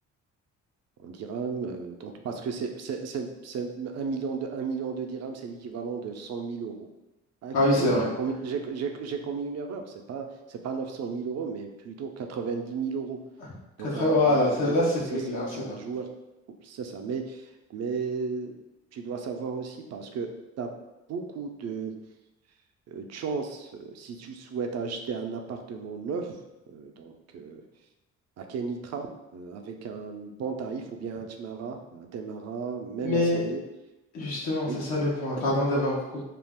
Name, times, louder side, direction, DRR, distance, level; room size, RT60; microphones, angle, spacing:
voice 1, 1.0-6.9 7.4-13.2 13.8-14.8 15.1-16.1 16.5-18.5 18.9-20.3 20.6-20.7 21.1-21.9 22.9-26.4 26.7-27.6 28.4-33.6 34.6-34.8, right 5 dB, 60° right, 4 dB, 0.5 m, -34 dB
voice 2, 7.5-8.1 13.8-15.8 33.0-33.4 34.1-36.2, left 1 dB, 90° left, -5 dB, 0.8 m, -25 dB
2.4 x 2.3 x 3.4 m, 1.0 s
cardioid pair, 90°, 30 cm